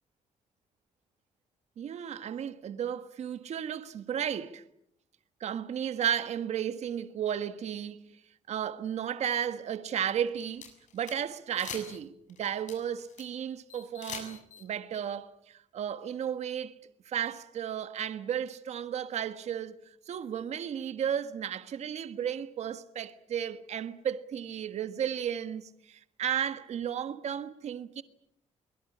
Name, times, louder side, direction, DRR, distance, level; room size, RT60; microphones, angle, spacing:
voice 1, 1.8-4.6 5.4-8.1 8.5-12.1 12.4-16.7 17.0-19.7 20.1-28.0, right 9 dB, 60° right, 1.5 m, -34 dB
sound 1, 10.2-11.2 11.5-12.0 12.3-13.2 13.7-14.6, left 7 dB, 75° left, 7.0 m, -43 dB
23.5 x 22.5 x 8.7 m
cardioid pair, 155°, 13 cm